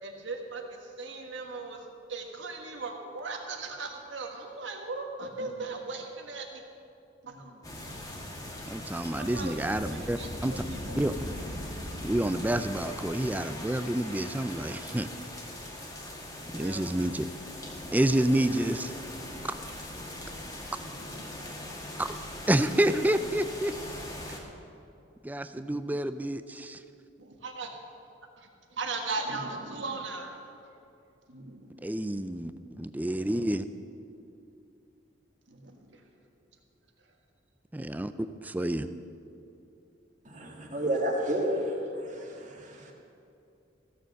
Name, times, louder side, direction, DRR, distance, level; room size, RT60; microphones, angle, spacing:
voice 1, 0.0-6.6 7.2-7.7 9.2-10.3 10.9-11.0 16.3-17.1 21.0-21.5 25.6-26.0 27.2-27.8 28.4-30.6 31.3-31.8 33.4-33.5 35.5-36.0 42.2-42.4, right 3 dB, 75° right, 3 dB, 1.5 m, -39 dB
sound 1, 7.6-24.4, left 1 dB, 20° left, 1.5 m, -40 dB
voice 2, 8.7-10.6 11.0-11.1 12.0-15.1 16.5-17.3 17.9-18.9 22.0-22.1 22.5-23.8 24.3-24.4 25.2-26.8 31.8-33.7 37.7-38.1 38.4-38.9, right 1 dB, 10° right, 11 dB, 0.4 m, -28 dB
voice 3, 40.3-42.9, right 1 dB, 40° right, 0 dB, 1.7 m, -31 dB
15.5 x 6.9 x 6.5 m, 2.7 s
head